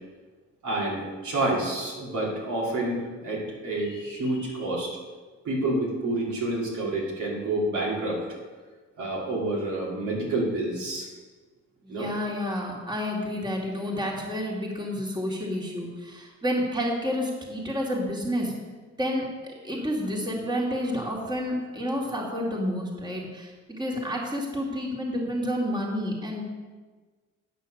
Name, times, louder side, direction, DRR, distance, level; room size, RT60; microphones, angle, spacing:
voice 1, 0.6-5.0 5.4-8.2 9.0-11.1 11.9-12.1, right 2 dB, 75° right, -4 dB, 3.2 m, -28 dB
voice 2, 11.8-18.5 19.0-19.3 19.6-26.4, equal, 15° right, -2 dB, 2.3 m, -30 dB
9.2 x 6.2 x 6.4 m, 1.4 s
cardioid pair, 90°, 30 cm